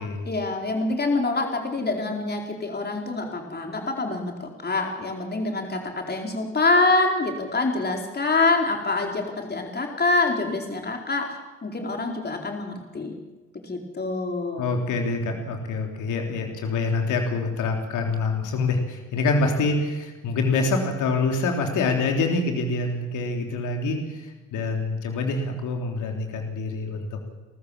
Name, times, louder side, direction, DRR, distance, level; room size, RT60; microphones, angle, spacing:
voice 1, 0.2-13.1 13.6-14.6, left 3 dB, 30° left, 2 dB, 4.5 m, -25 dB
voice 2, 14.6-27.2, left 3 dB, 65° left, 3 dB, 3.5 m, -26 dB
29.5 x 14.0 x 7.4 m, 1.2 s
hypercardioid pair, 50°, 32 cm